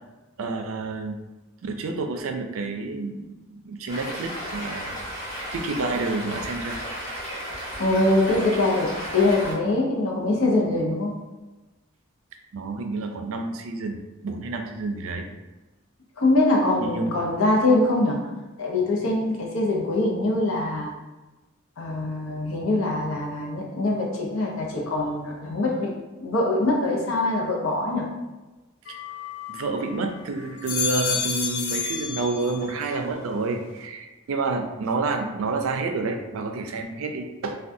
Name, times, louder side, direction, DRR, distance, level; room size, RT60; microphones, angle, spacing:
voice 1, 0.4-1.2 1.6-3.2 3.5-4.9 5.5-6.8 12.5-15.3 16.8-17.1 28.9-29.0 29.5-37.6, right 3 dB, 85° right, 5 dB, 0.4 m, -29 dB
Stream, 3.9-9.5, equal, 35° left, 1.1 m, -34 dB
voice 2, 7.8-11.2 16.2-18.2 18.6-20.9 21.8-25.9 26.2-28.1, left 2 dB, 90° left, -1 dB, 0.7 m, -23 dB
sound 1, 28.9-30.0 30.4-32.9 33.2-33.8, left 5 dB, 55° left, 0.4 m, -30 dB
3.4 x 2.3 x 2.6 m, 1.1 s
head